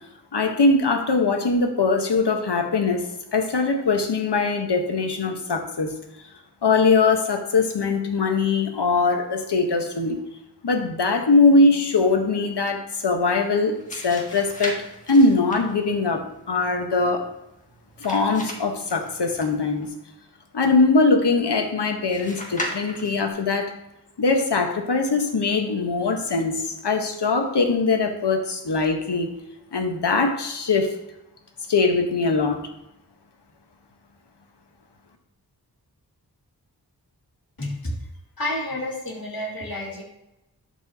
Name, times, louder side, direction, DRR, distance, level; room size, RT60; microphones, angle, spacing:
voice 1, 0.3-3.1 3.3-5.9 6.6-10.2 10.6-13.8 14.0-17.3 18.0-19.9 20.5-23.7 24.2-29.3 29.7-30.9 31.7-32.7, left 3 dB, 80° left, 5 dB, 1.1 m, -21 dB
sound 1, 13.6-19.9 22.1-23.3, equal, 20° left, 1.8 m, -37 dB
voice 2, 37.6-37.9 38.4-40.0, left 1 dB, 60° left, -1 dB, 2.2 m, -30 dB
12.0 x 4.7 x 2.8 m, 0.89 s
wide cardioid pair, 50°, 41 cm